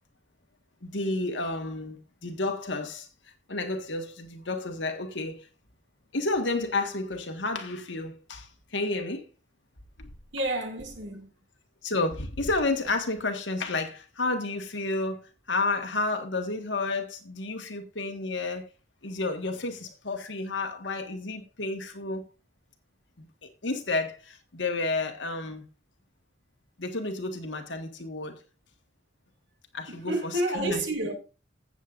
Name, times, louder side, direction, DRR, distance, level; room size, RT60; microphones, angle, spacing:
voice 1, 0.8-3.1 3.5-5.5 6.1-9.3 10.0-10.1 11.8-15.2 15.5-18.7 19.0-22.2 23.2-25.6 26.8-28.3 29.7-30.8, left 2 dB, 85° left, 1.6 m, -31 dB
voice 2, 10.3-11.3 29.9-31.2, right 1 dB, 85° right, 2.5 m, -30 dB
16.0 x 7.4 x 2.5 m
head